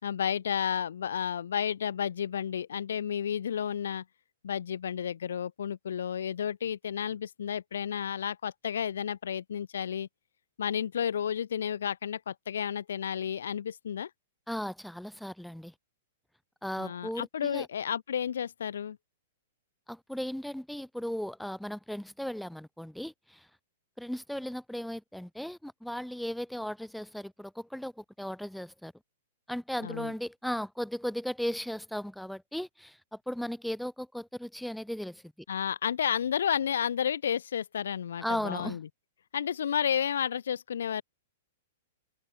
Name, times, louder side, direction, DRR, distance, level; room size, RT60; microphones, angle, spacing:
voice 1, 0.0-4.0 4.4-10.1 10.6-14.1 16.8-19.0 29.8-30.1 35.5-38.9 39.3-41.0, left 8 dB, 90° left, 5.5 m, -32 dB
voice 2, 14.5-15.7 16.6-17.7 19.9-23.5 24.0-28.9 29.5-35.2 38.2-38.8, equal, ahead, 2.1 m, -36 dB
hypercardioid pair, 170°, 0 cm